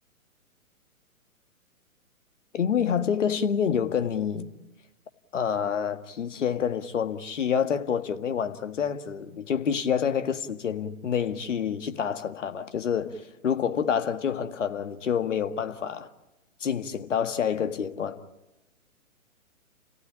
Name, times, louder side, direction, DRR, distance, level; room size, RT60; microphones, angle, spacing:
voice 1, 2.5-4.5 5.3-16.1 16.6-18.2, left 7 dB, 55° left, 1.9 m, -27 dB
30.0 x 16.5 x 10.0 m
figure-of-eight pair, 125°, 43 cm